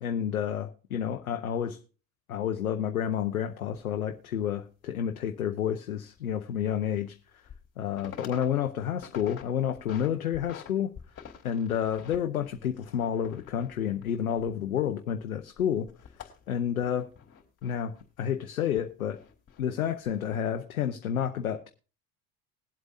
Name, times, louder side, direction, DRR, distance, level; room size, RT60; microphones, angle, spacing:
voice 1, 0.0-1.8 2.3-7.2 7.8-10.9 11.4-15.9 16.5-17.1 17.6-19.2 19.6-21.7, left 9 dB, 90° left, 0.8 m, -30 dB
sound 1, 3.2-3.3 3.8-3.9 6.1-6.2 6.6-6.7 7.3-7.7 7.9-8.5 8.8-9.4 9.8-10.7 10.9-14.9 15.2-18.0 18.8-19.6 20.1-20.4, left 8 dB, 35° left, 3.4 m, -47 dB
21.5 x 7.9 x 2.6 m
hypercardioid pair, 75°, 42 cm